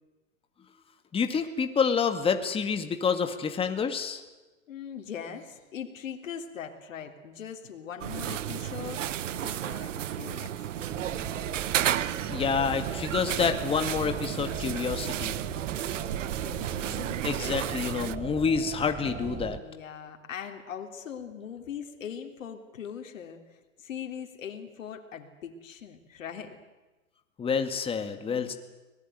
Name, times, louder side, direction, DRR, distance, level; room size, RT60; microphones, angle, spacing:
voice 1, 1.1-4.2 12.3-15.4 17.2-19.6 27.4-28.5, left 6 dB, 15° left, 7 dB, 2.0 m, -28 dB
voice 2, 4.7-9.1 9.3-10.9 16.5-17.2 19.6-26.6 28.3-28.5, left 8 dB, 70° left, 4 dB, 3.6 m, -41 dB
sound 1, 8.0-18.2, right 11 dB, 65° right, 1.3 m, -32 dB
sound 2, 10.9-19.6, right 8 dB, 20° right, 1.4 m, -39 dB
25.0 x 19.5 x 9.4 m, 1.2 s
hypercardioid pair, 125°, 40 cm